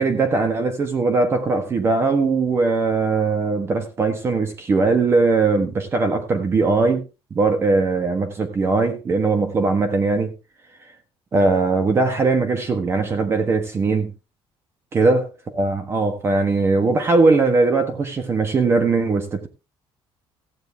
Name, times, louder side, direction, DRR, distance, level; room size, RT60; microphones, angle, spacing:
voice 1, 0.0-7.0 7.3-10.3 11.3-14.1 14.9-19.5, right 3 dB, 25° right, 1.2 m, -20 dB
15.0 x 9.1 x 3.3 m
cardioid pair, 175°, 10 cm